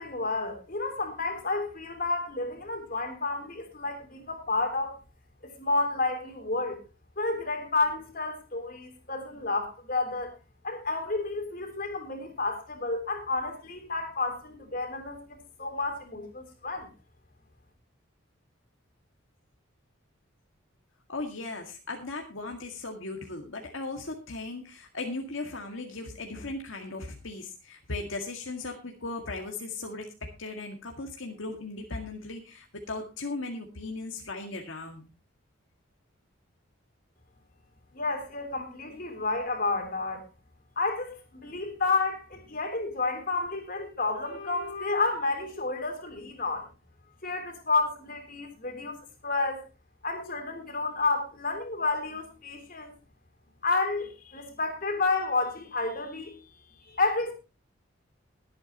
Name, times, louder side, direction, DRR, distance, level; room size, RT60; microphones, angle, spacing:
voice 1, 0.0-4.9 5.4-6.8 7.2-10.3 10.6-16.9 37.9-40.2 40.7-46.7 47.2-49.0 49.2-49.6 50.0-52.9 53.6-56.5 56.9-57.3, left 3 dB, 45° left, 4 dB, 3.4 m, -30 dB
voice 2, 21.1-30.1 30.4-35.1, left 3 dB, 75° left, 2 dB, 2.0 m, -37 dB
21.5 x 8.8 x 3.0 m, 0.28 s
head